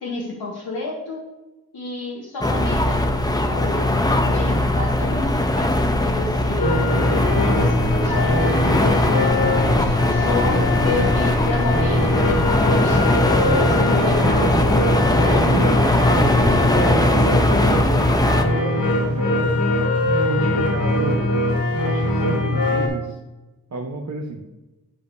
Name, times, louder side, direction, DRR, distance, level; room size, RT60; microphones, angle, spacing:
voice 1, 0.0-1.2 1.7-3.0 3.2-3.9 4.2-6.8 7.4-8.5 8.8-13.2 13.8-14.6, left 3 dB, 75° left, -5 dB, 1.4 m, -30 dB
sound 1, 2.4-18.4, left 1 dB, 10° left, 0.7 m, -20 dB
sound 2, 6.6-22.9, left 1 dB, 60° left, 2.1 m, -21 dB
voice 2, 14.2-14.8 15.2-19.6 20.2-21.3 21.8-23.2 23.7-24.4, right 2 dB, 45° right, 0 dB, 0.9 m, -30 dB
10.5 x 5.2 x 2.6 m, 1.1 s
cardioid pair, 75°, 39 cm